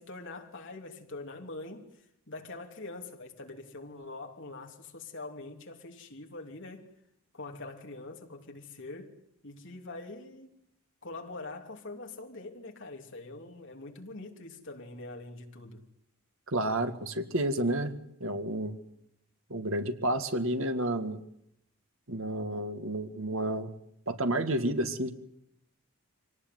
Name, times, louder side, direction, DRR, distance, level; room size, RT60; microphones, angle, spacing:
voice 1, 0.0-1.9 2.3-6.9 7.3-9.1 9.4-10.5 11.0-15.8, left 2 dB, 55° left, 3.1 m, -44 dB
voice 2, 16.5-17.9 18.2-18.8 19.5-21.2 22.1-23.7 24.1-25.1, right 1 dB, 60° right, 2.0 m, -30 dB
24.5 x 18.5 x 9.4 m
head